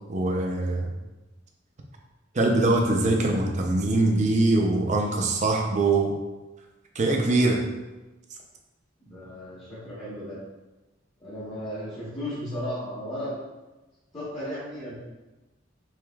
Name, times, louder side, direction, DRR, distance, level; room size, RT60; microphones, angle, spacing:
voice 1, 0.1-0.9 2.3-6.1 7.0-7.6, right 2 dB, 40° right, 1 dB, 0.5 m, -23 dB
voice 2, 9.0-10.4 11.2-13.4 14.1-14.9, equal, 25° left, -10 dB, 1.1 m, -35 dB
4.8 x 3.1 x 2.3 m, 1.1 s
head